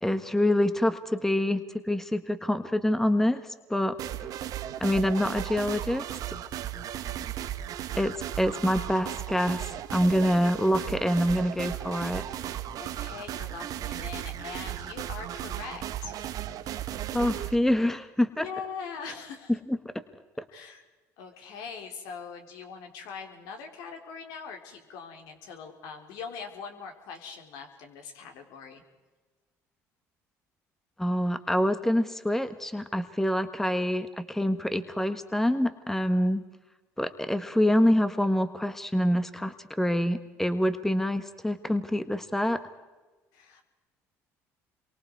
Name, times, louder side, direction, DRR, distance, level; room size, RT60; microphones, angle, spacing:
voice 1, 0.0-4.0 4.8-6.2 7.9-12.2 17.1-18.5 19.7-19.8 31.0-36.4 37.0-42.6, left 1 dB, 5° left, 10 dB, 1.5 m, -26 dB
sound 1, 4.0-17.6, right 11 dB, 60° right, 1.2 m, -36 dB
voice 2, 12.8-16.2 16.4-16.5 18.3-19.5 20.5-20.8 21.2-28.8 43.3-43.6, left 5 dB, 75° left, 4 dB, 4.0 m, -42 dB
27.5 x 24.0 x 4.8 m, 1.2 s
supercardioid pair, 80°, 7 cm